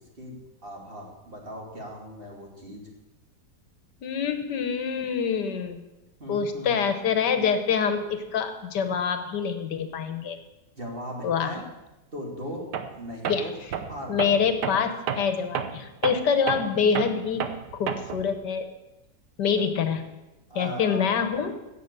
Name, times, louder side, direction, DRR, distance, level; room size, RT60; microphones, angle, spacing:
voice 1, 0.2-2.8 6.2-6.8 10.7-11.6 12.1-12.6 13.0-13.5 13.9-14.4 19.6-19.7 20.5-21.4, equal, 30° right, -1 dB, 2.8 m, -38 dB
voice 2, 4.0-5.8 6.3-10.4 11.2-11.5 13.3-13.4 14.1-17.5 17.7-18.7 19.4-20.0 20.5-21.5, left 6 dB, 80° left, 8 dB, 1.7 m, -26 dB
Tools, 12.7-13.0 13.2-18.3, right 7 dB, 75° right, 1.5 m, -31 dB
16.5 x 7.0 x 6.7 m, 1.0 s
omnidirectional pair, 1.8 m